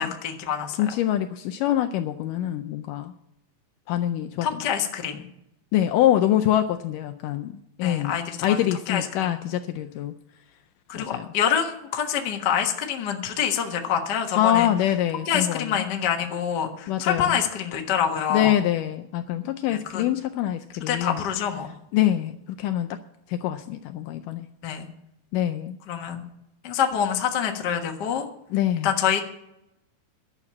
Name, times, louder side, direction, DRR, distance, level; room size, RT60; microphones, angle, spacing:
voice 1, 0.0-0.8 4.4-5.2 7.8-8.6 8.9-9.5 10.9-14.7 15.3-18.5 19.7-20.0 20.9-21.7 24.6-24.9 25.9-26.2 26.6-28.3 28.8-29.2, left 8 dB, 65° left, 3 dB, 1.0 m, -26 dB
voice 2, 0.8-3.1 3.9-4.6 5.7-10.1 10.9-11.3 14.4-15.8 16.9-17.4 18.3-21.2 21.9-23.0 23.3-24.5 25.3-25.8 28.5-28.9, left 12 dB, 80° left, 7 dB, 1.9 m, -25 dB
12.0 x 7.2 x 8.6 m, 0.83 s
omnidirectional pair, 4.2 m